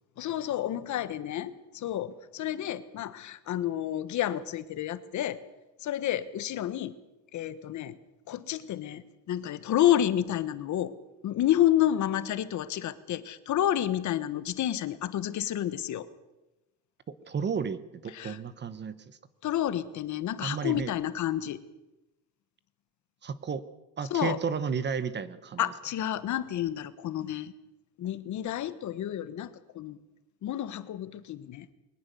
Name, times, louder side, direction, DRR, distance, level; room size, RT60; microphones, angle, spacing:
voice 1, 0.2-5.4 5.8-6.9 7.3-8.0 8.3-10.9 11.2-16.1 18.1-18.4 19.4-21.6 24.1-24.4 25.6-27.5 28.0-30.0 30.4-31.7, left 12 dB, 50° left, 13 dB, 1.3 m, -30 dB
voice 2, 17.1-19.0 20.4-20.9 23.2-23.6 24.0-25.6, right 6 dB, 30° right, 14 dB, 1.1 m, -32 dB
22.0 x 19.5 x 6.9 m, 1.0 s
cardioid pair, 145°, 38 cm